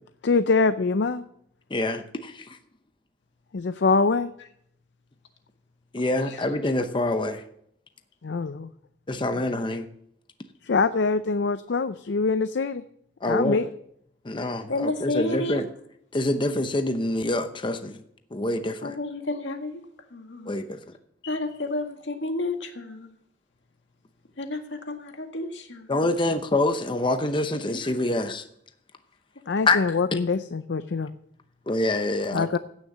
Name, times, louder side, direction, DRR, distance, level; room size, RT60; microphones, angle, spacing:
voice 1, 0.2-1.2 3.5-4.3 8.2-8.7 10.7-12.8 13.2-13.7 21.2-21.4 29.5-31.1 32.3-32.6, left 4 dB, 75° left, 12 dB, 0.5 m, -24 dB
voice 2, 1.7-2.5 5.9-7.4 9.1-9.9 13.2-13.6 14.2-15.7 16.1-18.0 18.3-19.0 20.5-20.8 25.9-28.4 29.7-29.8 30.1-30.2 31.7-32.5, left 2 dB, 25° left, 8 dB, 0.8 m, -26 dB
voice 3, 14.7-15.6 18.8-19.8 20.1-20.5 21.3-23.1 24.4-26.1 27.5-28.1, left 2 dB, 90° left, 5 dB, 1.9 m, -31 dB
16.0 x 6.4 x 7.2 m, 0.72 s
head